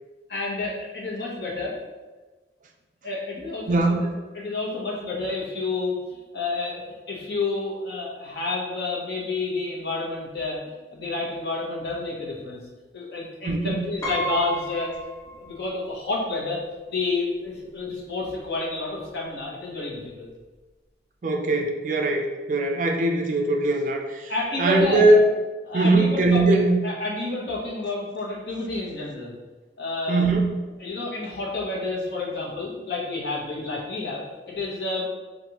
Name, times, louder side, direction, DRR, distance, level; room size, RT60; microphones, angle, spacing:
voice 1, 0.3-1.7 3.0-3.8 4.3-12.6 12.9-15.0 15.3-16.6 16.9-20.3 24.3-25.0 25.7-26.4 26.8-29.3 29.8-30.3 30.8-35.1, left 3 dB, 65° left, -4 dB, 1.0 m, -30 dB
voice 2, 3.7-4.1 13.4-13.8 21.2-24.3 24.6-25.3 25.7-26.8 30.1-30.6, right 2 dB, 45° right, 2 dB, 0.4 m, -21 dB
Piano, 14.0-15.8 16.2-16.3 17.4-17.5 17.8-18.1, right 1 dB, 15° left, 0.5 m, -33 dB
4.9 x 2.5 x 2.9 m, 1.2 s
head